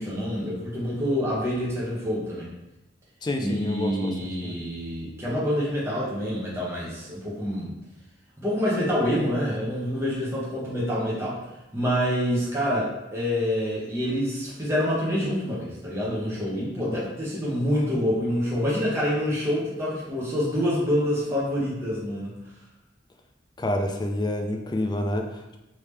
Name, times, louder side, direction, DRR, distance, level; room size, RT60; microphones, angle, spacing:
voice 1, 0.0-2.5 3.4-7.7 8.4-11.4 11.7-22.4, equal, 15° right, -7 dB, 0.7 m, -27 dB
voice 2, 3.2-4.6 23.6-25.6, left 1 dB, 25° left, 4 dB, 0.3 m, -28 dB
3.3 x 2.8 x 3.2 m, 0.95 s
head